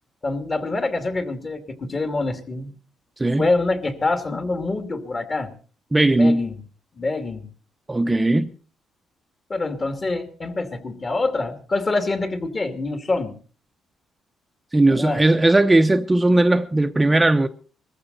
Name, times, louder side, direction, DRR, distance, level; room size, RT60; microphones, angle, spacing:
voice 1, 0.2-2.7 3.4-5.5 6.1-6.6 6.9-7.5 9.5-13.4 14.9-15.2, left 3 dB, 35° left, 2.6 m, -25 dB
voice 2, 3.2-3.5 5.9-6.5 7.9-8.5 14.7-17.5, right 2 dB, 15° right, 0.8 m, -18 dB
20.5 x 15.0 x 4.1 m
cardioid pair, 90°, 0 cm